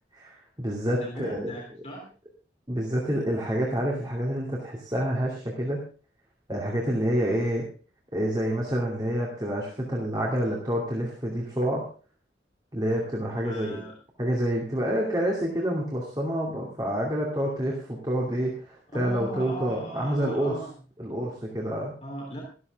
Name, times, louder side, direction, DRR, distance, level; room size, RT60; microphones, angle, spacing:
voice 1, 0.1-1.5 2.7-5.8 6.5-7.6 8.1-11.9 12.7-13.8 14.2-20.5 21.0-21.9, equal, 20° right, -2 dB, 2.6 m, -28 dB
voice 2, 1.0-2.0 13.4-13.9 18.9-20.7 22.0-22.4, right 1 dB, 35° left, -1 dB, 3.4 m, -38 dB
13.5 x 13.0 x 3.6 m, 0.38 s
head